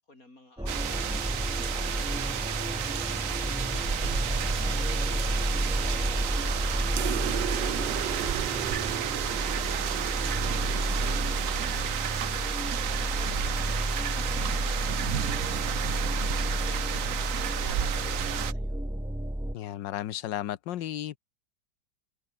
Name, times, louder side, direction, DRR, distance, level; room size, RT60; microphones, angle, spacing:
voice 1, 0.0-18.8, left 2 dB, 50° left, 7.5 m, -52 dB
sound 1, 0.6-19.5, right 1 dB, 5° right, 0.8 m, -31 dB
sound 2, 0.7-18.5, right 10 dB, 55° right, 1.1 m, -32 dB
sound 3, 7.0-11.8, right 13 dB, 80° right, 1.4 m, -37 dB
voice 2, 19.5-21.2, left 12 dB, 85° left, 1.6 m, -34 dB
omnidirectional pair, 1.9 m